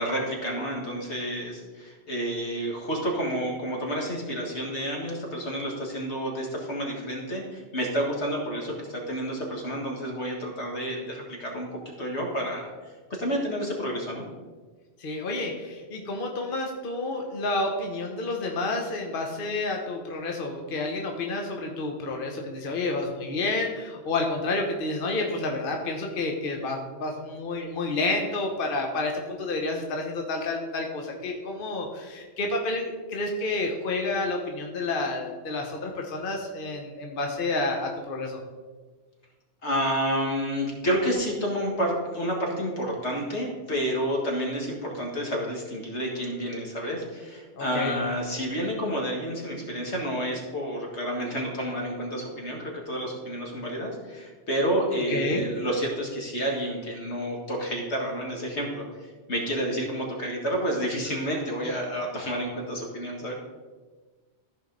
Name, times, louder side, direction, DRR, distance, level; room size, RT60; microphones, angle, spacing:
voice 1, 0.0-11.7 12.0-12.7 13.1-14.2 39.6-58.8 59.3-63.3, equal, 90° left, -1 dB, 2.1 m, -30 dB
voice 2, 15.0-38.4 47.5-48.0 55.1-55.5, left 2 dB, 55° left, 2 dB, 1.1 m, -30 dB
14.0 x 4.9 x 3.9 m, 1.4 s
omnidirectional pair, 1.1 m